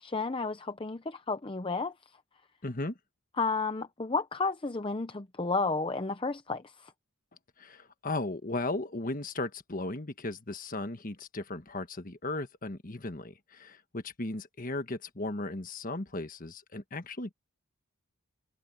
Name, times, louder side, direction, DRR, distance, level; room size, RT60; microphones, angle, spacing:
voice 1, 0.0-1.9 3.4-6.9, left 4 dB, 25° left, 0.7 m, -32 dB
voice 2, 2.6-3.0 7.6-17.3, left 2 dB, 40° left, 1.4 m, -36 dB
head